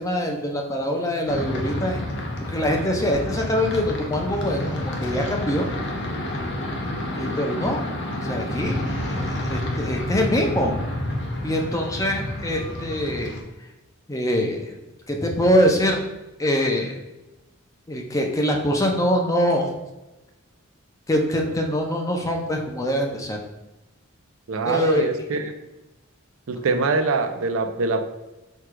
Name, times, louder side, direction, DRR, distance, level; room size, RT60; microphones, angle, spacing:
voice 1, 0.0-2.0 2.5-5.7 7.2-7.8 8.2-10.7 11.4-13.4 14.1-14.7 15.1-16.0 16.4-16.9 17.9-19.7 21.1-23.4 24.6-25.1, equal, 15° left, 2 dB, 0.5 m, -24 dB
sound 1, 1.3-13.4, left 1 dB, 50° left, 0.7 m, -29 dB
voice 2, 24.5-25.5 26.5-28.0, right 3 dB, 70° right, 7 dB, 0.5 m, -24 dB
4.5 x 2.3 x 4.8 m, 1.0 s
head